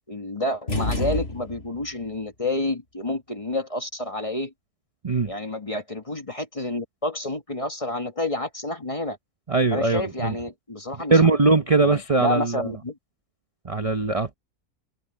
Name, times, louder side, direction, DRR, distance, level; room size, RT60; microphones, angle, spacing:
voice 1, 0.1-4.5 5.3-9.2 9.7-11.3 11.8-13.0, left 2 dB, 25° left, 1.4 m, -29 dB
sound 1, 0.7-1.9, left 2 dB, 40° left, 4.6 m, -28 dB
voice 2, 9.5-10.3 11.1-12.7 13.6-14.3, right 3 dB, 30° right, 0.7 m, -21 dB
omnidirectional pair, 1.6 m